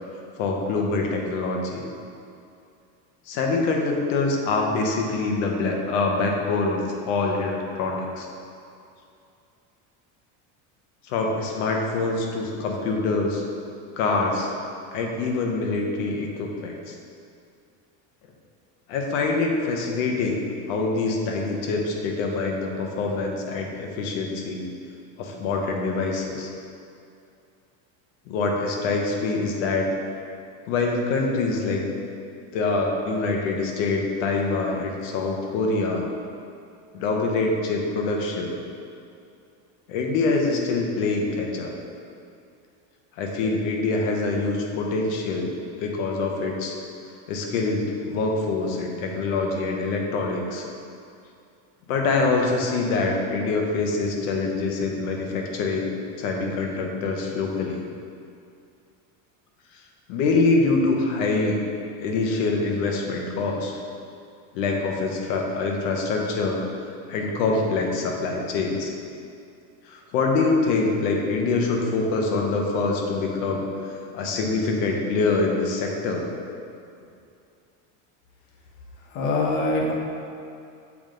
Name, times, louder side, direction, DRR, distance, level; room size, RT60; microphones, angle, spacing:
voice 1, 0.4-1.8 3.3-8.3 11.1-13.4 14.0-14.5 14.9-16.9 18.9-20.4 20.7-24.6 25.2-26.5 28.3-29.9 30.7-31.9 32.5-36.1 36.9-38.6 39.9-41.7 43.2-46.7 47.3-50.6 51.9-57.8 60.1-61.6 62.0-63.8 64.5-66.6 67.1-68.9 69.9-73.7 74.1-76.2, left 3 dB, 80° left, 1 dB, 1.0 m, -25 dB
voice 2, 79.1-79.9, left 2 dB, 55° left, -2 dB, 1.1 m, -23 dB
7.1 x 3.5 x 3.7 m, 2.5 s
cardioid pair, 150°, 38 cm